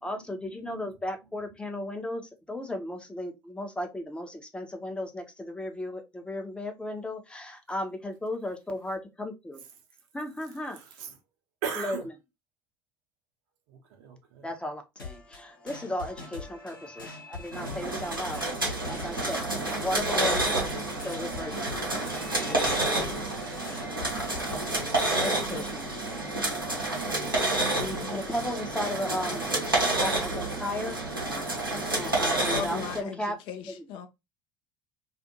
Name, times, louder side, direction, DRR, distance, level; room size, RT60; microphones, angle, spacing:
voice 1, 0.0-9.6 10.1-10.8 11.8-12.0 14.4-18.5 18.9-19.5 19.8-20.4 21.0-21.8 22.5-22.7 23.0-23.2 25.2-25.9 27.8-31.0 31.9-33.4 33.7-33.9, left 1 dB, 10° left, 0.6 m, -35 dB
voice 2, 10.7-11.1 11.6-12.0 13.7-14.5, right 7 dB, 60° right, 0.8 m, -38 dB
sound 1, 15.0-25.7, left 3 dB, 80° left, 0.9 m, -43 dB
sound 2, 17.5-33.0, right 2 dB, 90° right, 0.8 m, -29 dB
voice 3, 32.3-34.1, left 6 dB, 50° left, 0.5 m, -37 dB
2.5 x 2.5 x 2.7 m
figure-of-eight pair, 65°, 11 cm